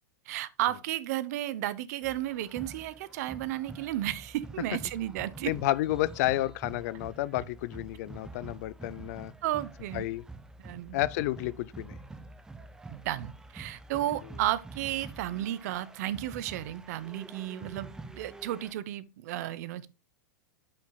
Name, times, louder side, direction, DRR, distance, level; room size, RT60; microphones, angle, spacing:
voice 1, 0.3-5.5 9.4-10.1 10.6-11.0 12.9-17.9 18.1-19.9, right 13 dB, 60° right, 0.8 m, -33 dB
sound 1, 2.0-18.7, right 2 dB, 5° right, 0.6 m, -47 dB
voice 2, 5.4-9.3 9.9-10.2 10.9-11.9, left 17 dB, 55° left, 0.5 m, -30 dB
8.5 x 7.8 x 2.2 m
hypercardioid pair, 135°, 10 cm